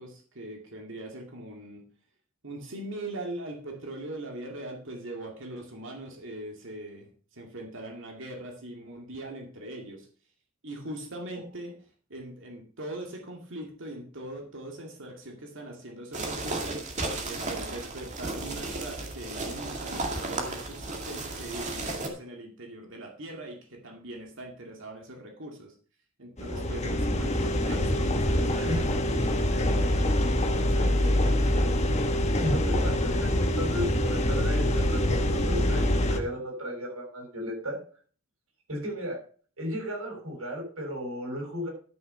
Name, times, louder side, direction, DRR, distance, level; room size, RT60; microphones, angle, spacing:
voice 1, 0.0-1.8 2.4-10.1 10.6-11.7 12.1-16.8 17.2-25.7 26.2-31.9, right 1 dB, 60° right, 1 dB, 2.3 m, -41 dB
sound 1, 16.1-22.1, right 2 dB, 35° right, 2.3 m, -34 dB
sound 2, 26.4-36.2, left 1 dB, 30° left, 1.2 m, -25 dB
voice 2, 32.4-37.8 38.7-39.2 39.6-41.7, equal, 85° right, 0 dB, 7.0 m, -34 dB
12.0 x 6.7 x 5.8 m, 0.43 s
head